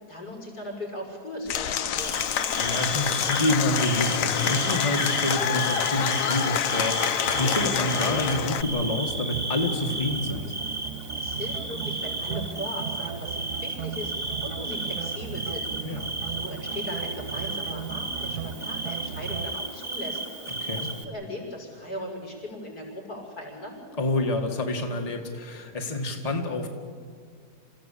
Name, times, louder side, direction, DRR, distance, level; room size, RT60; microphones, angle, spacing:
voice 1, 0.1-2.2 11.1-16.0 16.3-20.5 20.7-23.8, left 1 dB, 90° left, 0 dB, 6.6 m, -38 dB
Applause / Crowd, 1.5-8.6, left 9 dB, 60° left, 1.1 m, -27 dB
Bird / Cricket, 2.0-21.0, right 2 dB, 20° right, 1.5 m, -34 dB
voice 2, 2.5-10.5 15.8-16.1 20.6-20.9 24.0-26.7, left 1 dB, 25° left, 2 dB, 2.0 m, -28 dB
sound 1, 7.3-19.5, right 8 dB, 75° right, 1.3 m, -37 dB
27.5 x 15.5 x 8.7 m, 2.1 s
omnidirectional pair, 1.7 m